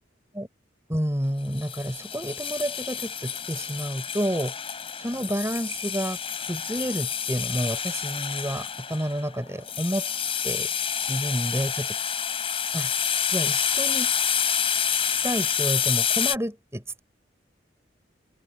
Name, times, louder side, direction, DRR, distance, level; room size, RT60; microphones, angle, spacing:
voice 1, 0.9-4.5 5.0-6.2 6.5-10.1 10.4-10.7 11.1-12.0 12.7-12.9 13.3-14.1 15.2-17.0, equal, 15° right, 5.5 m, -29 dB
sound 1, 1.5-16.3, left 8 dB, 30° left, 5.2 m, -28 dB
head